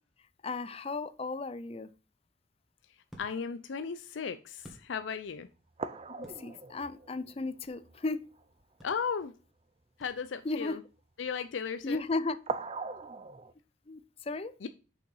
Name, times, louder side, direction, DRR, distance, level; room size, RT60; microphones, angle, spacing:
voice 1, 0.4-1.9 6.2-8.3 10.4-10.8 11.8-12.4 13.9-14.6, left 3 dB, 30° left, 15 dB, 0.5 m, -35 dB
sound 1, 2.0-5.4 5.8-7.9 8.3-8.4 8.8-10.6, equal, ahead, 1.9 m, -57 dB
voice 2, 2.9-5.5 8.8-9.3 10.0-10.8 11.2-12.0 14.6-14.7, left 6 dB, 85° left, 11 dB, 0.5 m, -36 dB
sound 2, 4.7-4.8 5.3-5.4 5.8-8.1 8.4-8.5 8.8-9.0 12.5-13.5, right 3 dB, 30° right, 0.5 m, -40 dB
6.3 x 5.6 x 5.5 m, 0.35 s
head